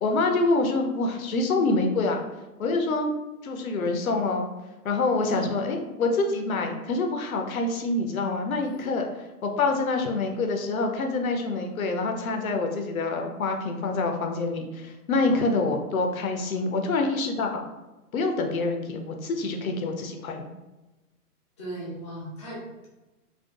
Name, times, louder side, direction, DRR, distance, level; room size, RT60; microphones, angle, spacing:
voice 1, 0.0-2.2 2.6-3.1 3.4-4.5 4.8-17.6 18.1-20.5, left 3 dB, 65° left, 3 dB, 0.6 m, -26 dB
voice 2, 21.6-22.9, right 1 dB, 20° left, -6 dB, 0.5 m, -37 dB
2.6 x 2.4 x 2.3 m, 1.1 s
figure-of-eight pair, 130°, 47 cm